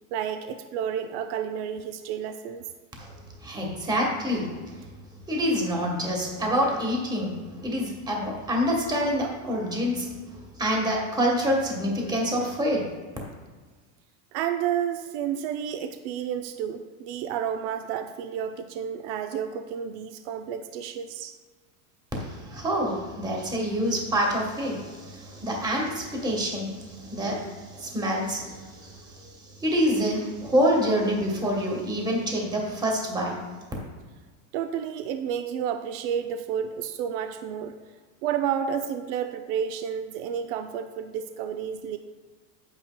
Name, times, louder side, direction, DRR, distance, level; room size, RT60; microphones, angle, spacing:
voice 1, 0.1-2.7 14.3-21.4 34.5-37.8 38.2-42.0, right 8 dB, 60° right, 7 dB, 0.6 m, -31 dB
voice 2, 3.4-4.5 5.3-10.1 10.6-12.9 22.2-33.4, equal, 10° right, -1 dB, 1.2 m, -27 dB
9.8 x 8.8 x 2.2 m, 1.5 s
supercardioid pair, 160°, 41 cm